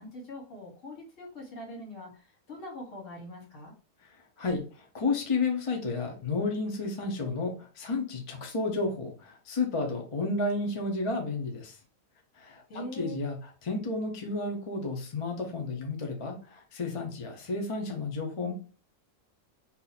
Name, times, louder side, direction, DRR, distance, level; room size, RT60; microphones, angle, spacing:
voice 1, 0.0-3.7 12.7-13.2, left 1 dB, 60° left, 0 dB, 1.6 m, -43 dB
voice 2, 4.9-11.8 12.4-18.5, left 3 dB, 35° left, 2 dB, 0.5 m, -32 dB
2.8 x 2.5 x 3.9 m, 0.38 s
omnidirectional pair, 1.5 m